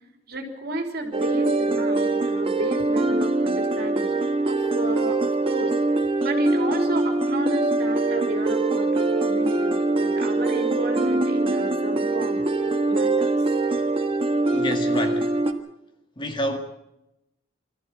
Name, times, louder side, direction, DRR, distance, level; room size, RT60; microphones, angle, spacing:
voice 1, 0.3-4.1 4.4-5.7 6.2-12.4 12.9-13.4, right 1 dB, 50° right, 3.6 m, -32 dB
sound 1, 1.1-15.5, right 2 dB, 30° right, 1.5 m, -23 dB
voice 2, 14.5-15.3 16.2-16.6, equal, 25° left, 1.9 m, -28 dB
24.5 x 14.5 x 7.7 m
head